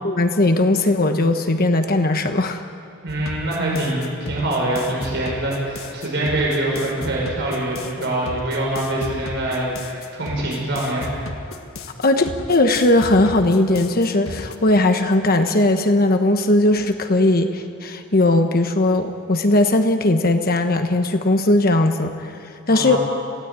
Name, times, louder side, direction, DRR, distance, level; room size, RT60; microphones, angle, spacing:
voice 1, 0.0-2.6 12.0-22.3 22.7-23.0, left 2 dB, 45° left, 6 dB, 1.2 m, -18 dB
voice 2, 3.0-11.2 22.7-23.0, right 1 dB, 55° right, -3 dB, 5.5 m, -24 dB
sound 1, 3.1-14.5, left 2 dB, 70° left, 1.8 m, -35 dB
26.5 x 17.0 x 9.1 m, 2.5 s
head